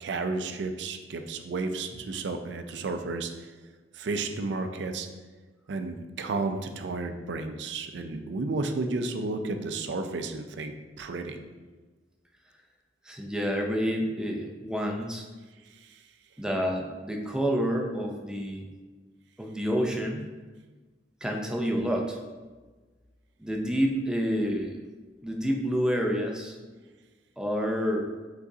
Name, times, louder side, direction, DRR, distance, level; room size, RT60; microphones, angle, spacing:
voice 1, 0.0-3.5 3.9-5.1 5.7-11.4 15.6-16.1, right 3 dB, 65° right, 7 dB, 0.4 m, -32 dB
voice 2, 13.0-15.2 16.4-18.7 19.4-20.3 21.2-22.2 23.4-24.8 25.2-26.6 27.4-28.1, equal, 5° right, 0 dB, 0.4 m, -28 dB
4.9 x 3.9 x 2.7 m, 1.3 s
head